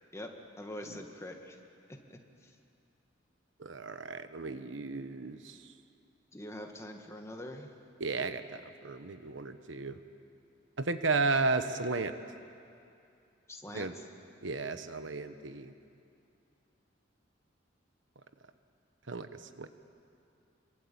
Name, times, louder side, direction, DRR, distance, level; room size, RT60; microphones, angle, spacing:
voice 1, 0.6-1.6 1.9-2.5 6.3-7.7 13.5-14.0, left 1 dB, 15° left, 3 dB, 2.0 m, -44 dB
voice 2, 3.6-5.7 8.0-10.0 10.8-12.1 13.7-13.9 14.4-15.7 19.1-19.7, right 3 dB, 85° right, 10 dB, 1.2 m, -34 dB
26.5 x 23.5 x 8.8 m, 2.6 s
head